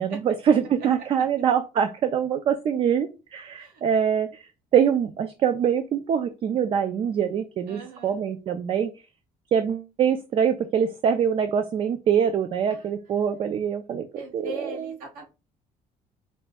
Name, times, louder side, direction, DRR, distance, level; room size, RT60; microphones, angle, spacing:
voice 1, 0.0-8.9 9.5-14.1 14.3-14.7, right 8 dB, 35° right, 9 dB, 0.3 m, -24 dB
voice 2, 7.7-8.2 12.7-12.9 14.1-15.2, right 2 dB, 80° right, 0 dB, 1.5 m, -39 dB
4.5 x 2.2 x 4.1 m, 0.29 s
cardioid pair, 175°, 15 cm